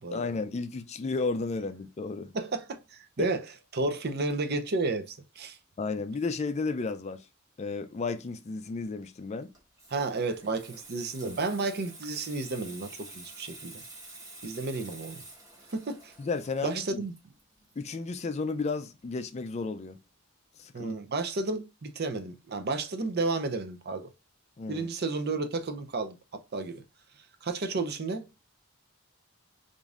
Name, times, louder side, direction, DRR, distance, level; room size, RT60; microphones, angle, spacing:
voice 1, 0.1-2.4 5.8-7.3 7.6-9.5 16.2-17.1 17.8-20.0 20.6-21.0 24.6-24.9, left 4 dB, 30° left, 0.4 m, -33 dB
voice 2, 2.3-3.5 3.7-5.6 9.9-13.8 14.4-15.2 15.7-16.1 16.6-17.1 20.7-24.1 24.7-26.8 27.4-28.3, right 3 dB, 50° right, 0.6 m, -32 dB
Water tap faucet / Sink (filling or washing), 9.4-18.7 19.0-19.3, right 2 dB, 15° right, 1.1 m, -49 dB
5.0 x 2.6 x 2.4 m
head